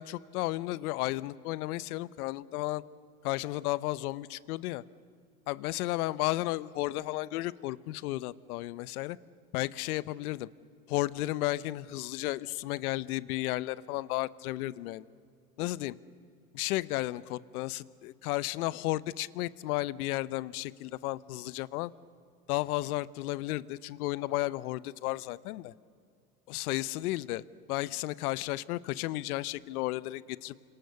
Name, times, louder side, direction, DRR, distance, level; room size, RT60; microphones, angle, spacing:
voice 1, 0.0-2.8 3.2-4.8 5.5-9.2 9.5-10.5 10.9-15.1 15.6-16.0 16.5-21.9 22.5-25.7 26.5-27.4 27.7-30.5, left 17 dB, 75° left, 19 dB, 0.9 m, -33 dB
29.0 x 26.5 x 6.9 m, 2.3 s
hypercardioid pair, 95°, 45 cm